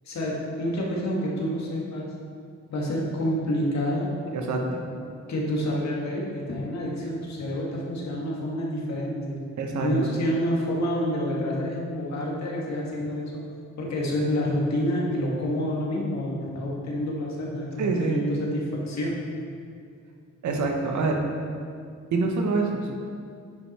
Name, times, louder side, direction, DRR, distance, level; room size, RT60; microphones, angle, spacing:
voice 1, 0.1-2.1 2.7-4.1 5.3-9.4 9.8-13.3 13.8-19.2, equal, 65° left, -3 dB, 2.0 m, -28 dB
voice 2, 4.3-4.8 9.6-9.9 17.8-18.2 20.4-21.2 22.1-22.9, right 3 dB, 75° right, 2 dB, 1.2 m, -26 dB
9.4 x 5.4 x 4.3 m, 2.3 s
cardioid pair, 80°, 29 cm